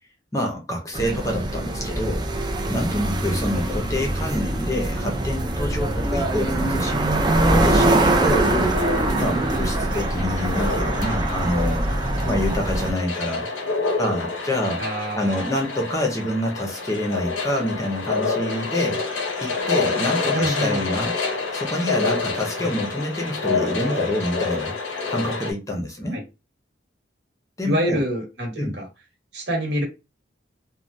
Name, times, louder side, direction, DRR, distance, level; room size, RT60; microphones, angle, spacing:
voice 1, 0.3-2.3 2.7-8.8 9.2-11.9 12.2-13.5 14.0-14.8 15.1-19.0 19.4-21.1 21.5-24.7 25.1-26.2 27.6-28.0 28.6-28.8, left 1 dB, 15° left, 0.6 m, -27 dB
sound 1, 0.9-12.9, right 1 dB, 25° right, 0.4 m, -23 dB
sound 2, 8.6-25.5, left 4 dB, 85° left, 0.6 m, -28 dB
voice 2, 14.8-15.5 20.2-20.8 22.6-22.7 26.1-26.2 27.6-28.9 29.3-29.8, equal, 65° right, 1.3 m, -26 dB
3.2 x 2.1 x 2.6 m
head